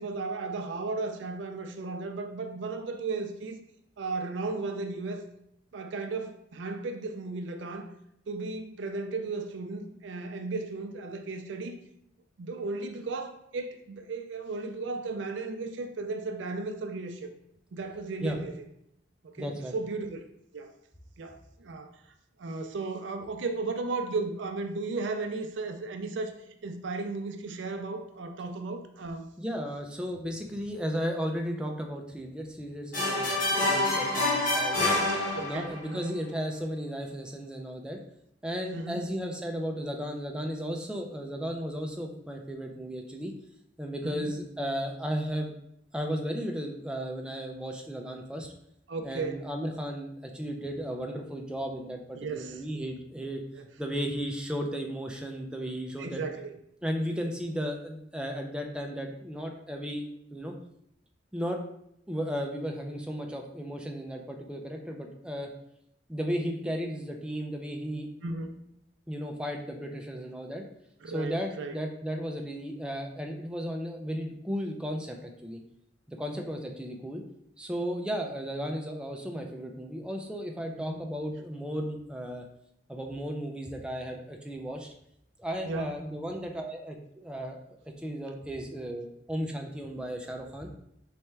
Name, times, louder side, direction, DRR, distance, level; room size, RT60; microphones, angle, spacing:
voice 1, 0.0-3.6 4.0-5.3 5.7-7.9 8.3-11.8 12.4-17.3 17.7-18.6 19.2-20.3 20.5-20.7 21.2-21.9 22.4-26.4 26.6-29.3 35.1-36.2 38.7-39.1 44.0-44.3 48.9-49.4 52.1-52.6 53.6-53.7 56.0-56.6 68.2-68.5 71.0-71.8 80.8-81.1 85.6-86.0, right 3 dB, 75° right, 6 dB, 0.4 m, -35 dB
voice 2, 19.4-19.7 29.4-35.0 35.4-38.0 38.4-43.3 43.8-45.5 45.9-48.5 49.0-53.4 53.8-56.2 56.8-60.0 60.3-60.5 61.3-61.6 62.1-65.5 66.1-68.1 69.1-70.7 71.1-75.6 76.1-77.2 77.6-82.4 82.9-84.9 85.4-87.6 88.0-90.7, equal, 5° right, 2 dB, 0.4 m, -35 dB
sound 1, 32.9-35.9, left 2 dB, 45° left, 1.1 m, -27 dB
4.3 x 3.4 x 3.3 m, 0.75 s
head